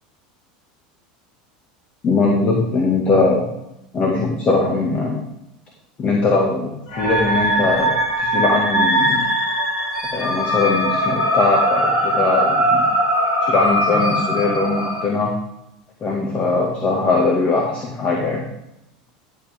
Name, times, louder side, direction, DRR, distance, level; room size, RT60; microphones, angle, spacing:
voice 1, 2.0-3.4 3.9-5.2 6.0-9.3 10.1-12.8 13.4-15.3 16.0-18.4, left 3 dB, 35° left, 0 dB, 2.1 m, -20 dB
sound 1, 6.9-15.0, equal, 80° left, 4.1 m, -20 dB
12.5 x 7.7 x 3.6 m, 0.85 s
hypercardioid pair, 100°, 4 cm